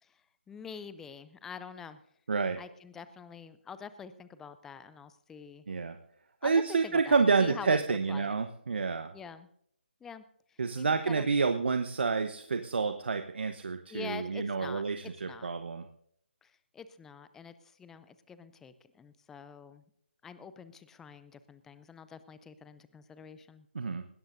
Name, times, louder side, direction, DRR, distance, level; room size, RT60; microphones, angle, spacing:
voice 1, 0.0-2.0 2.6-5.6 6.4-8.3 9.1-9.5 10.0-10.2 10.5-11.3 13.9-15.5 16.4-19.8 20.2-23.7, left 6 dB, 5° left, 13 dB, 0.5 m, -46 dB
voice 2, 2.3-2.6 5.7-6.0 6.4-9.1 10.6-15.8 23.7-24.1, right 4 dB, 65° right, 7 dB, 1.1 m, -29 dB
20.5 x 17.0 x 2.6 m, 0.69 s
figure-of-eight pair, 155°, 6 cm